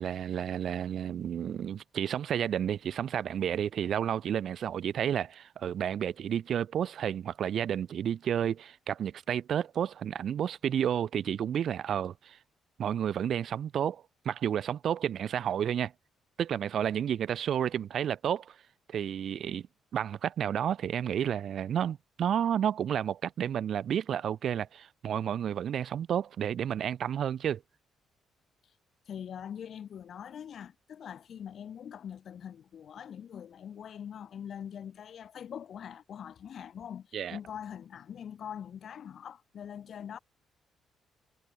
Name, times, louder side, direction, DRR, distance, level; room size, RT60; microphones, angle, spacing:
voice 1, 0.0-12.4 12.8-15.9 16.4-18.6 18.9-19.7 19.9-27.6 37.1-37.4, right 9 dB, 65° right, 1.1 m, -31 dB
voice 2, 29.1-40.2, left 8 dB, 60° left, 1.1 m, -43 dB
cardioid pair, 90°, 0 cm